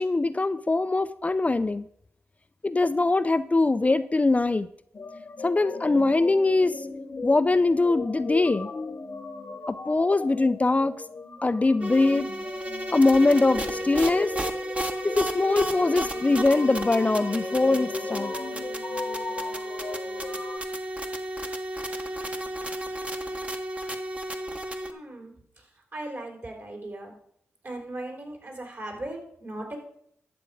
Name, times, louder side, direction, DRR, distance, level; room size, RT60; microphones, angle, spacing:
voice 1, 0.0-1.9 2.6-4.7 5.4-6.9 7.2-8.7 9.7-11.0 11.4-12.3 12.9-14.3 15.0-18.3, left 3 dB, 30° left, 11 dB, 0.5 m, -22 dB
sound 1, 4.9-20.6, left 4 dB, 50° left, 1.0 m, -37 dB
sound 2, 11.8-24.9, right 1 dB, 25° right, 1.2 m, -33 dB
voice 2, 24.9-25.6 25.9-27.2 27.6-29.8, right 1 dB, 50° right, 0 dB, 4.1 m, -38 dB
12.0 x 7.0 x 4.9 m, 0.70 s
supercardioid pair, 45°, 5 cm